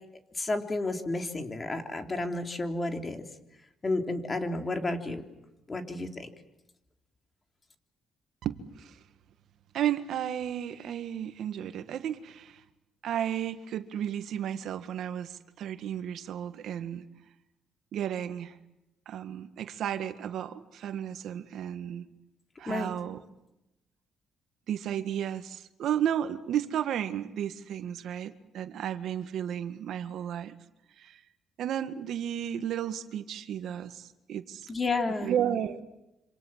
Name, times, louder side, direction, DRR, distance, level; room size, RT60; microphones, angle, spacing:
voice 1, 0.3-3.2 3.8-5.2 5.7-6.3 22.7-22.9 34.7-35.3, left 2 dB, 30° left, 5 dB, 3.5 m, -31 dB
voice 2, 8.4-9.0 9.7-12.6 13.0-17.0 17.9-18.6 19.0-22.0 22.6-23.2 24.7-30.5 31.0-31.2 31.6-34.7 35.2-35.8, right 10 dB, 75° right, 9 dB, 1.7 m, -33 dB
27.0 x 26.5 x 7.5 m, 0.91 s
cardioid pair, 90°, 0 cm